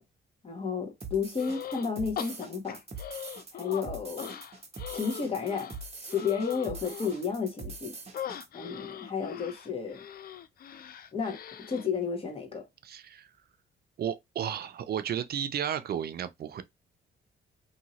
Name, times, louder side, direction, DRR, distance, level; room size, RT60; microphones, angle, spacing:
voice 1, 0.4-2.8 3.5-4.4 4.9-7.9 8.5-10.0 11.1-11.4 11.7-12.7, left 6 dB, 30° left, 1.1 m, -32 dB
sound 1, 1.0-8.5, right 3 dB, 30° right, 1.0 m, -43 dB
sound 2, 1.4-1.9 2.2-3.8 4.2-7.2 8.1-11.9, left 9 dB, 50° left, 0.4 m, -41 dB
voice 2, 12.8-13.3 14.0-16.6, right 9 dB, 50° right, 0.5 m, -33 dB
2.7 x 2.7 x 2.9 m
cardioid pair, 90°, 20 cm